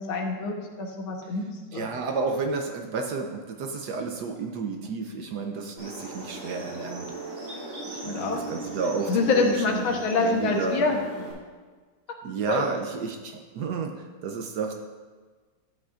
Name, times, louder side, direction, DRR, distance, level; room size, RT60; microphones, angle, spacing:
voice 1, 0.0-1.5 1.7-1.9 8.0-8.4 9.1-11.0 12.5-12.7, left 4 dB, 80° left, 1 dB, 1.9 m, -26 dB
voice 2, 1.7-7.1 7.5-11.3 12.2-13.9 14.2-14.7, right 4 dB, 65° right, 3 dB, 1.1 m, -31 dB
sound 1, 5.8-11.3, right 2 dB, 90° right, 3.7 m, -39 dB
12.5 x 8.7 x 2.5 m, 1.4 s
omnidirectional pair, 2.2 m